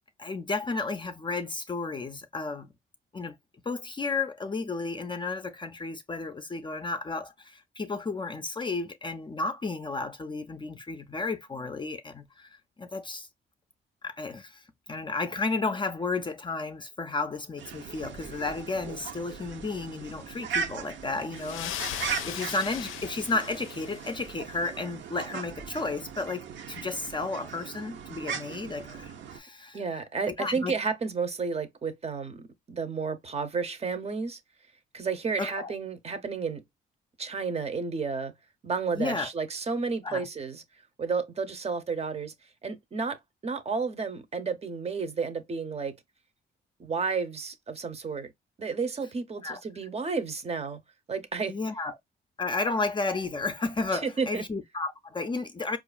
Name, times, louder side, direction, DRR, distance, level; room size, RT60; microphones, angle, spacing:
voice 1, 0.2-2.7 3.1-3.4 3.7-13.3 14.0-29.8 30.3-30.7 35.4-35.7 38.9-39.3 40.0-40.3 49.4-49.6 51.5-52.0 52.4-55.8, left 3 dB, 25° left, 0.4 m, -33 dB
sound 1, 17.6-29.4, right 6 dB, 70° right, 0.7 m, -38 dB
sound 2, 21.4-24.4, left 11 dB, 85° left, 0.5 m, -38 dB
voice 2, 29.7-34.4 34.9-36.6 37.2-38.3 38.6-40.6 41.0-42.3 42.6-43.2 43.4-45.9 46.8-48.3 48.6-50.8 51.1-51.5 53.9-54.4, right 5 dB, 30° right, 0.7 m, -31 dB
4.5 x 2.5 x 2.2 m
cardioid pair, 90°, 20 cm